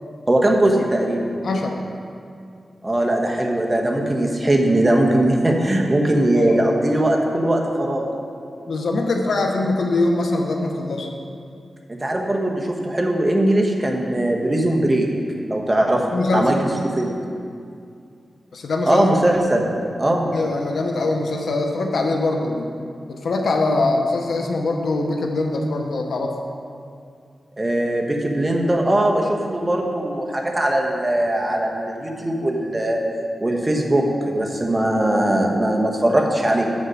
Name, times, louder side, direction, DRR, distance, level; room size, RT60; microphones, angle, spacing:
voice 1, 0.3-1.3 2.8-8.2 11.9-15.1 15.5-16.0 16.3-16.6 16.8-17.1 18.9-19.7 20.0-20.3 27.6-33.0 33.4-36.7, right 1 dB, 25° right, 1 dB, 1.1 m, -20 dB
voice 2, 1.4-1.8 6.3-6.6 8.7-11.1 16.1-16.5 18.5-19.1 20.3-22.7 23.1-26.3, left 2 dB, 80° left, 2 dB, 0.8 m, -22 dB
7.7 x 5.4 x 6.1 m, 2.4 s
cardioid pair, 70°, 0 cm